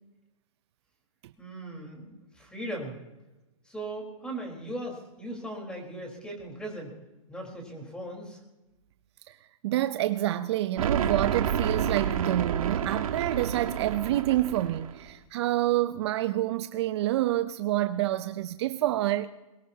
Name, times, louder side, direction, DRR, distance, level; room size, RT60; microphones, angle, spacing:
voice 1, 1.4-3.0 3.7-6.9 7.3-8.4, right 1 dB, 5° left, 4.1 m, -38 dB
voice 2, 9.6-19.3, right 14 dB, 50° right, 0.7 m, -27 dB
sound 1, 10.8-15.1, right 8 dB, 75° right, 1.5 m, -29 dB
22.0 x 21.0 x 2.9 m
hypercardioid pair, 140°, 18 cm